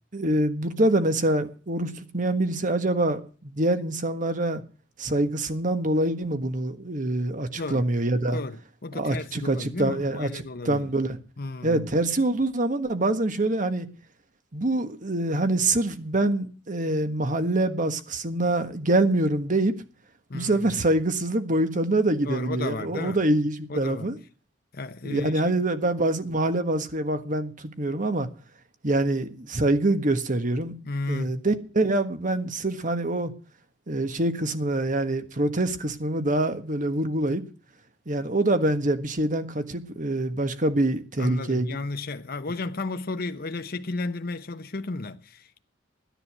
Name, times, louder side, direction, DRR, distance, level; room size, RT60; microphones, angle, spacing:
voice 1, 0.1-4.6 5.0-8.4 8.9-11.2 11.6-13.9 14.5-19.7 20.3-24.2 25.0-28.3 28.8-30.7 31.1-33.3 33.9-37.4 38.1-41.8, right 2 dB, 45° right, 1.4 m, -25 dB
voice 2, 7.6-7.9 8.3-10.9 11.4-11.9 20.3-20.7 22.2-23.2 23.7-24.1 24.7-25.5 30.8-31.4 41.2-45.6, left 3 dB, 50° left, 0.9 m, -33 dB
13.5 x 10.5 x 6.2 m
head